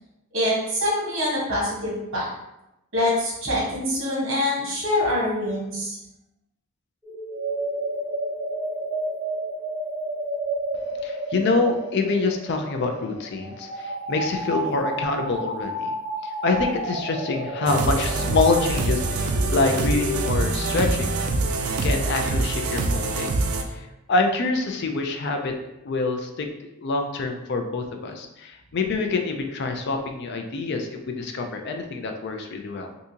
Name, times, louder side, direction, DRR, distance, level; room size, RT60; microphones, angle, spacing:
voice 1, 0.3-2.3 2.9-6.0, left 1 dB, 60° right, -5 dB, 1.3 m, -25 dB
sound 1, 7.0-20.3, right 1 dB, 20° right, 0.8 m, -31 dB
voice 2, 11.0-15.9 16.2-21.1 21.5-23.3 23.7-25.5 25.8-26.5 26.8-32.9, left 3 dB, 50° left, 4 dB, 0.4 m, -26 dB
sound 2, 17.7-23.6, right 2 dB, 85° right, 0.4 m, -25 dB
3.6 x 2.7 x 2.7 m, 0.90 s
head